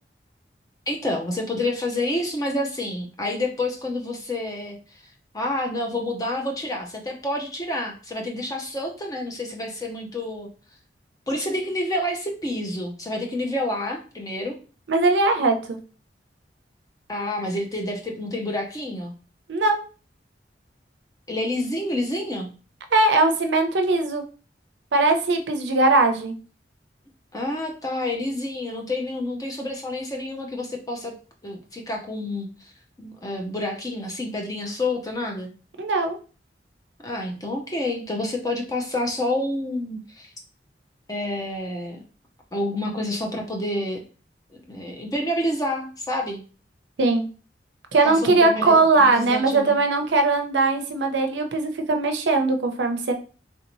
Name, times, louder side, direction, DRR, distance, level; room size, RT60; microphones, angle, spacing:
voice 1, 0.9-4.8 5.3-10.5 11.3-14.5 17.1-19.1 21.3-22.5 27.3-31.1 31.4-32.7 33.0-35.5 37.0-40.3 41.1-42.0 42.5-44.0 44.5-46.4 48.0-49.8, left 1 dB, 20° left, 1 dB, 0.6 m, -28 dB
voice 2, 14.9-15.8 19.5-19.8 22.9-24.2 24.9-26.3 35.8-36.2 47.0-47.2 47.9-53.1, right 3 dB, 75° right, 5 dB, 0.5 m, -20 dB
3.3 x 2.7 x 3.0 m, 0.37 s
head